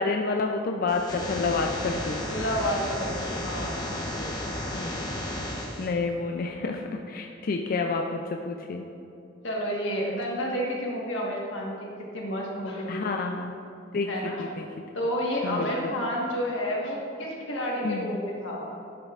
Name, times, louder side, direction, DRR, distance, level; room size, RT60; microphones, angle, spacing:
voice 1, 0.0-2.2 4.7-4.9 5.8-8.9 12.9-13.5 13.9-14.1 14.4-14.6 15.4-15.7 17.8-18.1, left 4 dB, 50° left, 3 dB, 0.4 m, -29 dB
sound 1, 0.9-5.9, left 1 dB, 20° left, 1.0 m, -33 dB
voice 2, 2.3-5.0 9.4-13.2 14.1-14.4 14.9-18.7, equal, 90° left, -2 dB, 1.4 m, -31 dB
10.5 x 6.7 x 2.4 m, 2.8 s
head